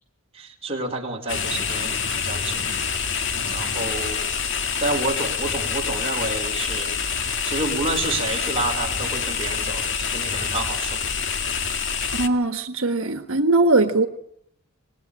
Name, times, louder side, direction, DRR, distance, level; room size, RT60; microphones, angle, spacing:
voice 1, 0.3-2.6 3.5-4.2 4.8-6.9 7.4-11.0, right 2 dB, 30° right, 1 dB, 4.7 m, -29 dB
sound 1, 1.3-12.3, left 6 dB, 65° left, 2.0 m, -26 dB
voice 2, 12.1-14.1, right 2 dB, 85° right, 7 dB, 1.5 m, -20 dB
26.0 x 20.5 x 8.8 m, 0.72 s
head